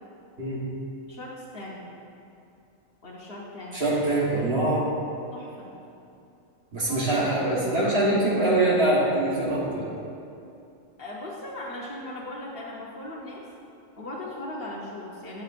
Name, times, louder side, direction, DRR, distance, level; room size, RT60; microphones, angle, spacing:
voice 1, 1.1-1.8 3.0-4.0 5.3-5.7 6.9-7.2 11.0-13.5 14.0-15.4, left 1 dB, 50° left, -4 dB, 1.1 m, -38 dB
voice 2, 3.7-4.9 6.7-9.8, right 1 dB, 50° right, -5 dB, 1.5 m, -23 dB
9.2 x 7.7 x 2.5 m, 2.6 s
omnidirectional pair, 1.4 m